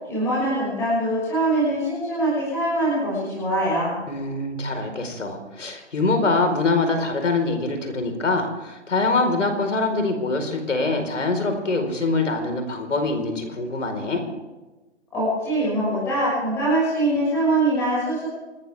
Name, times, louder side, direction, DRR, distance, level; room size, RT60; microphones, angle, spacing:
voice 1, 0.1-3.9 15.1-18.3, right 1 dB, 5° left, -8 dB, 6.3 m, -23 dB
voice 2, 4.1-14.2, left 3 dB, 85° left, 5 dB, 4.8 m, -24 dB
27.0 x 14.5 x 3.6 m, 1.1 s
hypercardioid pair, 175°, 35 cm